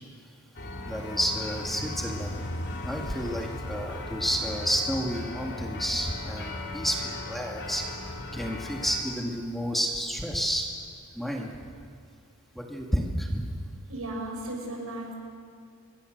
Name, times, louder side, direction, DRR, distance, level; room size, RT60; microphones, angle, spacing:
sound 1, 0.5-9.0, left 2 dB, 50° left, 3.0 m, -37 dB
voice 1, 0.9-2.4 2.8-10.7 11.1-11.5 12.6-13.6, equal, ahead, 0 dB, 2.3 m, -30 dB
voice 2, 13.9-15.1, right 1 dB, 80° right, 1 dB, 6.5 m, -35 dB
26.5 x 22.0 x 6.7 m, 2.2 s
head